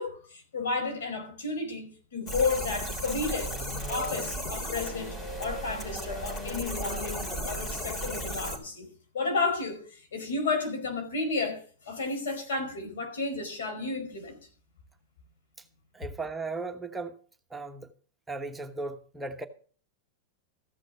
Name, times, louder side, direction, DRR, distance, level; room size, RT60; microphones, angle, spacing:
voice 1, 0.0-3.5 3.9-8.9 9.1-14.4, left 3 dB, 80° left, 5.0 m, -32 dB
sound 1, 2.3-8.6, equal, 25° left, 3.6 m, -35 dB
voice 2, 15.9-17.1 17.5-17.9 18.3-19.5, right 3 dB, 10° right, 1.1 m, -36 dB
14.5 x 6.4 x 7.0 m
hypercardioid pair, 115°, 0 cm